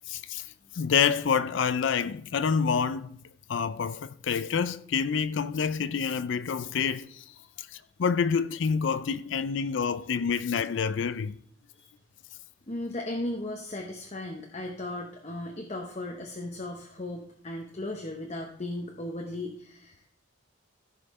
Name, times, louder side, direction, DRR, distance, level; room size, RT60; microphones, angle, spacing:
voice 1, 0.1-0.4 0.7-3.2 3.5-7.2 7.6-11.4, left 6 dB, 65° left, 0.4 m, -27 dB
voice 2, 12.7-20.1, left 1 dB, 30° left, 0.8 m, -36 dB
14.5 x 5.6 x 4.2 m
head